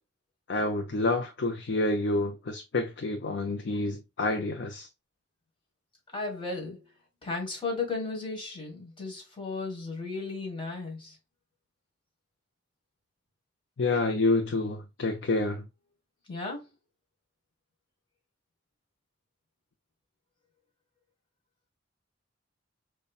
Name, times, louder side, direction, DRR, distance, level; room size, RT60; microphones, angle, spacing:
voice 1, 0.5-4.9 13.8-15.7, left 2 dB, 65° left, 0.5 m, -28 dB
voice 2, 6.1-6.9 7.2-11.2 16.3-16.7, left 3 dB, 25° left, 1.6 m, -35 dB
5.3 x 2.2 x 2.3 m
head